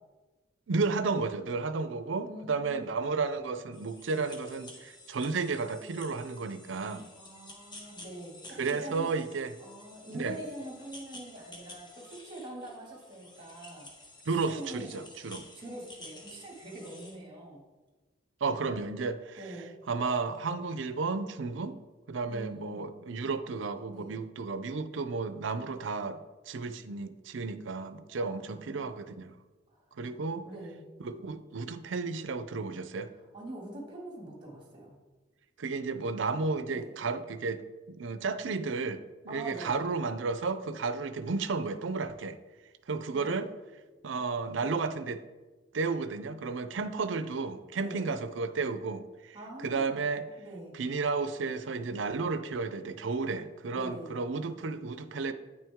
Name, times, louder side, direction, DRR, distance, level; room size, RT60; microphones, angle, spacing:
voice 1, 0.7-7.1 8.6-9.6 10.1-10.4 14.3-15.4 18.4-19.5 19.9-21.8 22.1-26.2 26.5-29.3 30.0-30.5 31.0-33.1 35.6-37.6 37.9-42.4 42.9-43.5 44.0-45.2 45.7-50.3 50.7-55.3, right 4 dB, 70° right, 12 dB, 0.5 m, -33 dB
voice 2, 2.2-2.9 7.2-9.1 9.6-13.9 14.3-15.0 15.5-17.6 19.4-19.7 22.3-22.9 23.9-24.2 28.1-28.9 30.4-30.8 33.3-35.0 36.7-36.9 39.3-39.7 43.1-43.4 47.7-48.1 49.3-50.0 50.4-50.7 53.7-54.2, right 1 dB, 25° right, -2 dB, 2.1 m, -44 dB
sound 1, 3.7-17.2, left 2 dB, 25° left, 1.2 m, -51 dB
9.0 x 6.0 x 3.6 m, 1.3 s
head